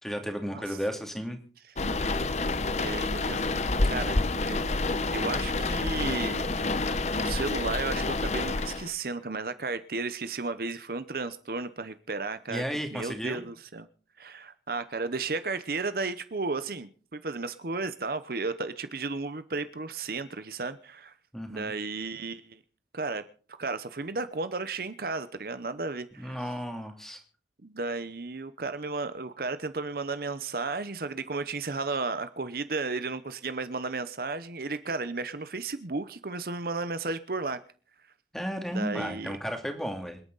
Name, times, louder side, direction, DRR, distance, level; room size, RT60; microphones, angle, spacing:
voice 1, 0.0-1.4 3.9-4.3 12.5-13.4 21.3-21.7 26.2-27.2 38.3-40.2, equal, ahead, 2.6 m, -34 dB
sound 1, 1.8-8.9, left 2 dB, 40° left, 0.9 m, -28 dB
voice 2, 2.7-4.7 5.1-6.4 7.1-12.6 12.9-13.9 14.2-21.1 21.5-22.6 22.9-23.2 23.6-26.4 27.6-37.6 38.7-39.3, right 3 dB, 55° right, 0.8 m, -34 dB
27.0 x 9.1 x 4.0 m
head